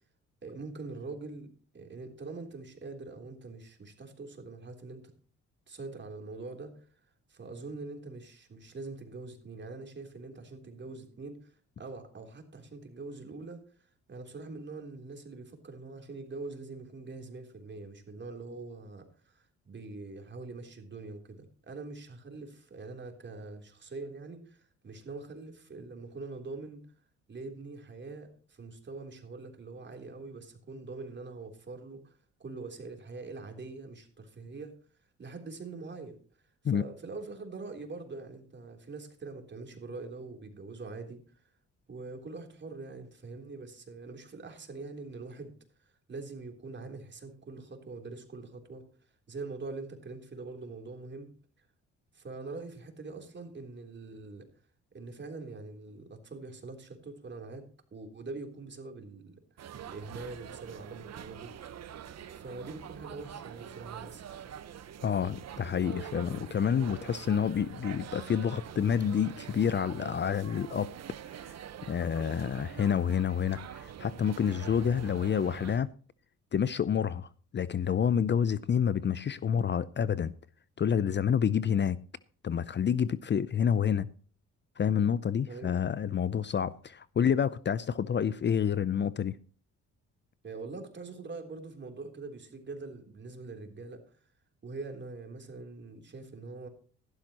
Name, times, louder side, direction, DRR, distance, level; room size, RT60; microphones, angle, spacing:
voice 1, 0.4-5.0 5.7-26.8 27.3-34.7 35.2-41.4 41.9-51.7 52.1-54.5 54.9-59.4 59.8-61.5 62.3-64.5 85.5-85.8 90.4-94.3 94.6-96.7, right 3 dB, 35° right, 3.5 m, -44 dB
sound 1, 59.6-75.8, right 9 dB, 60° right, 1.2 m, -45 dB
voice 2, 65.0-70.9 71.3-71.6 71.9-75.9 76.5-80.3 80.8-82.0 82.4-84.1 84.8-89.4, left 8 dB, 35° left, 0.6 m, -28 dB
15.0 x 12.0 x 3.0 m
cardioid pair, 90°, 30 cm